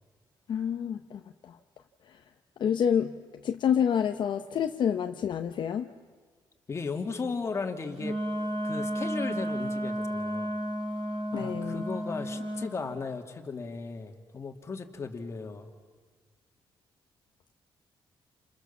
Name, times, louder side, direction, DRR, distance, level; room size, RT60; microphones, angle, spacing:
voice 1, 0.5-1.6 2.1-2.2 2.6-3.1 3.4-5.9 11.3-11.8, left 8 dB, 65° left, 6 dB, 0.9 m, -28 dB
voice 2, 6.7-8.2 8.6-10.5 11.3-15.7, left 4 dB, 30° left, 4 dB, 2.2 m, -36 dB
Wind instrument woodwind instrument, 8.0-12.7, equal, 70° right, 6.5 m, -32 dB
29.0 x 27.5 x 7.2 m, 1.5 s
cardioid pair, 135°, 9 cm